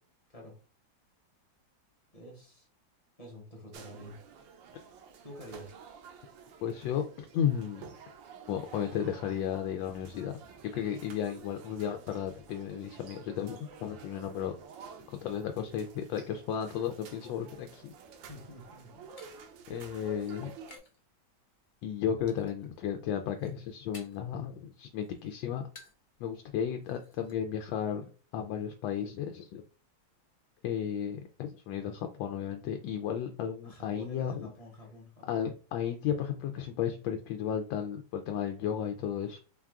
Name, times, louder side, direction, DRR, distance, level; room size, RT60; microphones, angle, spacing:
voice 1, 2.1-2.7 3.2-4.2 5.2-5.8 18.3-19.1 33.6-35.5, equal, 25° left, -1 dB, 0.9 m, -48 dB
sound 1, 3.7-20.8, right 6 dB, 75° right, 1.3 m, -51 dB
voice 2, 6.6-7.9 8.5-10.3 10.7-14.6 15.2-17.9 19.7-20.5 21.8-25.6 26.2-29.6 30.6-34.5 35.3-39.4, left 8 dB, 85° left, 6 dB, 1.3 m, -34 dB
sound 2, 18.6-21.0 21.3-21.8 22.3-22.8 23.1-24.4 24.7-26.1 26.4-26.5 26.8-27.3, left 3 dB, 60° left, 0.5 m, -56 dB
4.4 x 2.3 x 3.6 m, 0.36 s
omnidirectional pair, 2.1 m